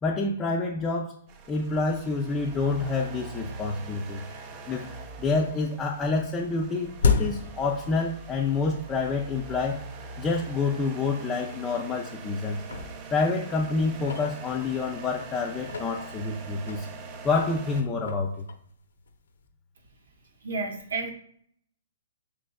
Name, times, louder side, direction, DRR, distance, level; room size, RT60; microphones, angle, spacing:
voice 1, 0.0-1.2 1.5-4.2 4.7-4.9 5.2-9.8 10.2-12.6 13.1-16.9 17.2-18.4, left 3 dB, 20° left, -1 dB, 0.5 m, -28 dB
sound 1, 1.3-17.8, right 3 dB, 35° right, 0.5 m, -43 dB
sound 2, 4.2-4.3 4.7-5.3 5.5-8.5 8.8-8.9 9.6-9.7 10.2-10.3 10.7-10.8 11.5-12.1 12.4-15.0 15.5-19.4, left 5 dB, 70° left, 0.7 m, -33 dB
voice 2, 20.4-21.1, right 3 dB, 70° right, 4 dB, 0.8 m, -31 dB
5.0 x 3.2 x 2.3 m, 0.63 s
figure-of-eight pair, 120°, 0 cm